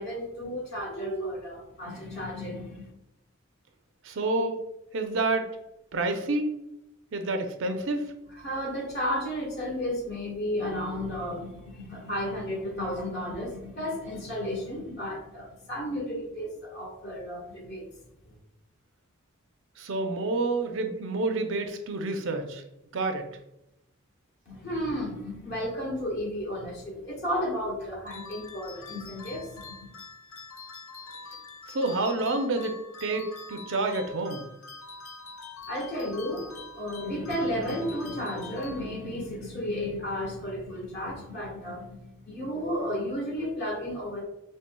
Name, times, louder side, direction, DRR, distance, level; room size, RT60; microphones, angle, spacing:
voice 1, 0.0-2.9 8.3-17.9 24.5-29.9 35.7-44.2, equal, 50° left, -1 dB, 1.4 m, -33 dB
voice 2, 4.0-4.6 4.9-5.5 5.9-6.5 7.1-8.1 19.8-22.6 22.9-23.3 31.7-34.4, right 2 dB, 60° right, 5 dB, 0.5 m, -28 dB
sound 1, 28.1-39.3, left 4 dB, 70° left, 0.5 m, -45 dB
5.4 x 3.2 x 2.2 m, 0.88 s
head